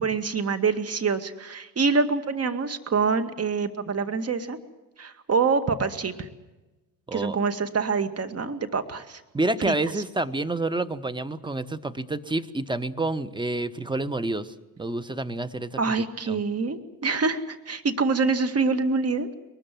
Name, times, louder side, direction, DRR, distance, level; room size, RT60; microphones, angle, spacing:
voice 1, 0.0-4.6 5.0-6.3 7.1-9.2 9.6-9.8 15.8-19.3, right 4 dB, 30° right, 9 dB, 2.1 m, -26 dB
voice 2, 9.3-15.8 16.3-16.4, right 2 dB, 10° right, 13 dB, 1.2 m, -28 dB
22.5 x 20.5 x 7.7 m, 1.1 s
hypercardioid pair, 65°, 49 cm